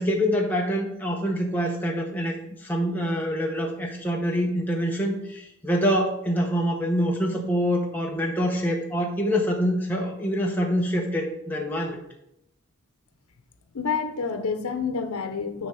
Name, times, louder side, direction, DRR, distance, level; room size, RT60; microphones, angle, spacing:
voice 1, 0.0-12.0, equal, 10° left, -1 dB, 0.8 m, -25 dB
voice 2, 13.7-15.7, left 5 dB, 85° left, 8 dB, 0.8 m, -28 dB
9.6 x 3.5 x 5.4 m, 0.80 s
head